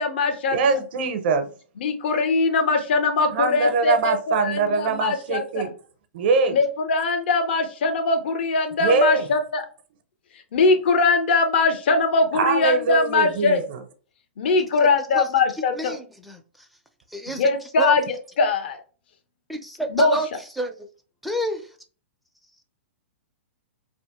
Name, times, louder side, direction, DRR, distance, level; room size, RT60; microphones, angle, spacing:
voice 1, 0.0-0.6 1.8-5.7 6.5-9.6 10.5-13.6 14.4-15.9 17.4-18.0 18.4-18.8 19.9-20.2, left 3 dB, 60° left, 0.5 m, -21 dB
voice 2, 0.5-1.4 3.3-5.7 6.1-6.6 8.8-9.3 12.3-13.8, right 4 dB, 55° right, 0.5 m, -22 dB
voice 3, 14.6-16.7 17.1-18.0 19.5-20.9 21.2-21.8, right 1 dB, ahead, 0.4 m, -31 dB
2.8 x 2.5 x 2.3 m
figure-of-eight pair, 110°, 6 cm